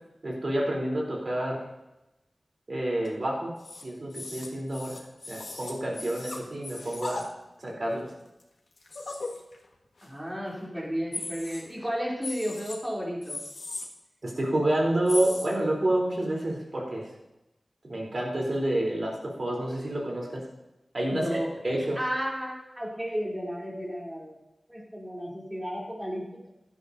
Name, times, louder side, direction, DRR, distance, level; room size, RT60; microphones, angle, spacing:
voice 1, 0.2-1.6 2.7-3.5 3.8-5.0 5.3-7.3 7.6-8.1 14.2-17.1 17.9-20.4 20.9-21.4 21.6-22.0, right 1 dB, 50° right, -2 dB, 3.7 m, -28 dB
sound 1, 3.0-3.1 3.6-3.8 4.1-7.2 7.9-8.1 8.4-8.5 8.8-9.6 10.0-10.1 10.5-10.8 11.1-11.9 12.2-12.8 13.2-13.8 15.1-15.5, left 3 dB, 80° left, 1.6 m, -38 dB
voice 2, 10.0-13.4 21.1-21.5 22.0-24.3 24.7-26.5, equal, 15° right, -4 dB, 3.5 m, -33 dB
16.0 x 11.5 x 2.8 m, 0.95 s
wide cardioid pair, 85°, 0 cm